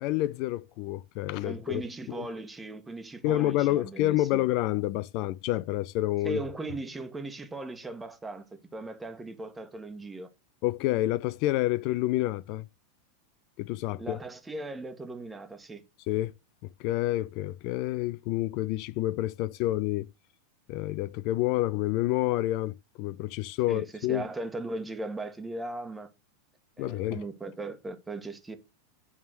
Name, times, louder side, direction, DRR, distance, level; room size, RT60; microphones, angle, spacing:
voice 1, 0.0-1.8 2.1-2.3 3.2-6.4 10.6-12.6 13.6-14.2 16.1-16.3 16.8-20.1 20.7-24.2 26.8-27.2, left 16 dB, 50° left, 0.4 m, -28 dB
voice 2, 1.4-4.4 6.2-8.4 8.7-10.3 14.0-15.8 23.7-26.1 26.8-28.6, right 2 dB, 10° right, 1.4 m, -38 dB
8.7 x 3.6 x 6.2 m
hypercardioid pair, 95°, 0 cm